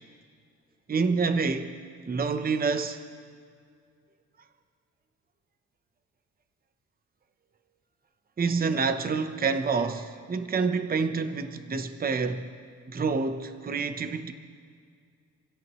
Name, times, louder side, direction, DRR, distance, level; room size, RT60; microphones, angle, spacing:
voice 1, 0.9-1.8 2.1-3.0 8.4-12.5 12.9-14.3, right 4 dB, 30° right, 0.9 m, -27 dB
27.5 x 17.0 x 3.1 m
cardioid pair, 90°, 30 cm